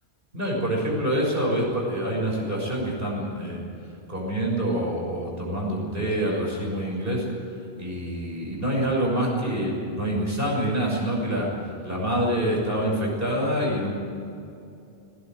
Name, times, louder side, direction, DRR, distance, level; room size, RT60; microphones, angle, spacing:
voice 1, 0.3-3.6 4.1-7.3 7.5-13.9, right 1 dB, 60° right, -2 dB, 6.7 m, -26 dB
19.0 x 19.0 x 9.2 m, 2.6 s
omnidirectional pair, 1.1 m